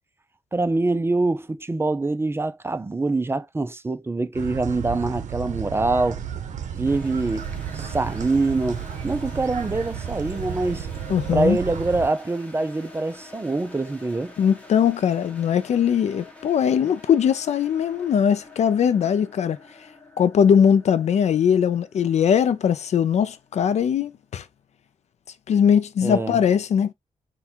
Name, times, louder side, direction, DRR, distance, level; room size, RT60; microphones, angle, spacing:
voice 1, 0.5-6.2 6.8-7.5 7.7-10.9 11.3-14.3 26.0-26.4, right 3 dB, 20° right, 0.4 m, -24 dB
sound 1, 4.3-12.1, right 8 dB, 70° right, 0.6 m, -33 dB
sound 2, 6.9-23.7, left 2 dB, 10° left, 1.1 m, -47 dB
voice 2, 11.1-11.6 14.4-19.6 20.2-24.4 25.5-26.9, left 8 dB, 60° left, 0.4 m, -20 dB
3.6 x 2.2 x 4.4 m
cardioid pair, 85°, 13 cm